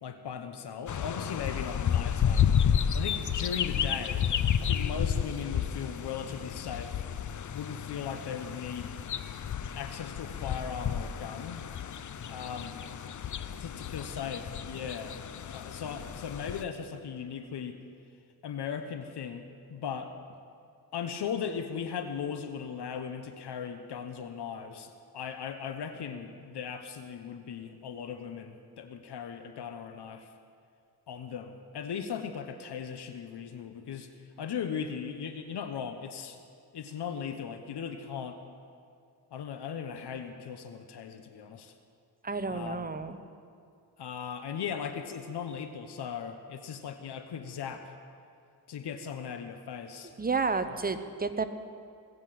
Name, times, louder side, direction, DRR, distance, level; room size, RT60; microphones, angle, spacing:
voice 1, 0.0-2.5 2.9-4.3 4.6-7.0 7.5-8.9 9.7-11.6 12.3-12.8 13.6-17.8 18.4-19.4 19.7-20.1 20.9-30.3 31.1-34.1 34.4-36.4 36.7-38.4 39.3-41.7 42.5-43.0 44.0-47.9 48.7-50.1 50.7-50.8, left 7 dB, 75° left, 8 dB, 1.0 m, -38 dB
sound 1, 0.9-16.6, left 8 dB, 50° left, 0.6 m, -31 dB
voice 2, 42.2-43.2 50.2-51.5, right 4 dB, 20° right, 9 dB, 0.9 m, -31 dB
20.5 x 8.3 x 7.6 m, 2.4 s
cardioid pair, 95°, 40 cm